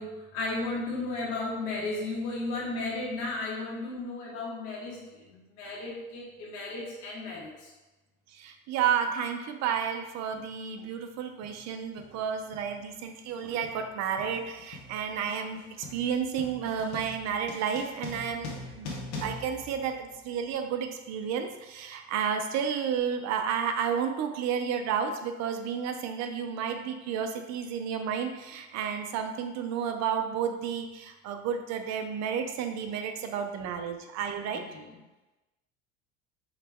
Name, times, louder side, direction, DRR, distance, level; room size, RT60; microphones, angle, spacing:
voice 1, 0.0-7.7 34.5-34.9, left 2 dB, 85° left, -5 dB, 1.5 m, -35 dB
voice 2, 8.3-15.6 15.9-18.9 19.2-34.6, right 7 dB, 50° right, 6 dB, 0.6 m, -31 dB
sound 1, 10.3-10.5 11.4-11.7 12.0-20.5, left 2 dB, 50° left, 1.0 m, -43 dB
4.8 x 3.1 x 3.5 m, 1.1 s
cardioid pair, 140°, 35 cm